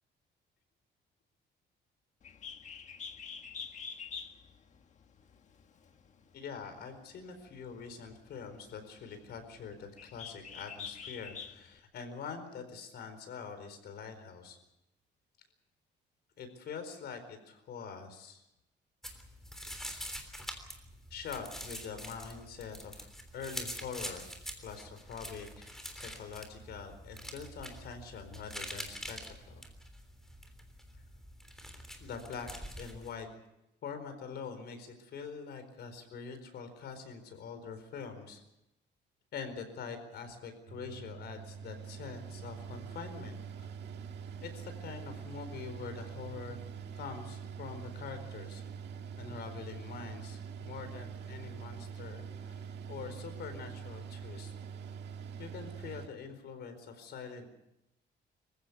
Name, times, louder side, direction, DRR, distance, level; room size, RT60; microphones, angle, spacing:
Bird, 2.2-11.8, left 6 dB, 40° left, 1.5 m, -47 dB
voice 1, 6.3-14.6 16.4-18.4 21.1-23.1 23.3-24.3 24.6-29.6 32.0-32.5 32.8-33.3 33.8-38.4 39.3-43.7 44.4-46.6 46.9-48.6 49.2-54.5 55.4-57.5, left 6 dB, 65° left, 8 dB, 4.5 m, -44 dB
sound 1, 19.0-33.1, equal, ahead, 3.4 m, -45 dB
Mechanical fan, 40.7-56.1, right 7 dB, 65° right, 1.8 m, -44 dB
26.0 x 16.0 x 8.3 m, 0.90 s
cardioid pair, 150°, 19 cm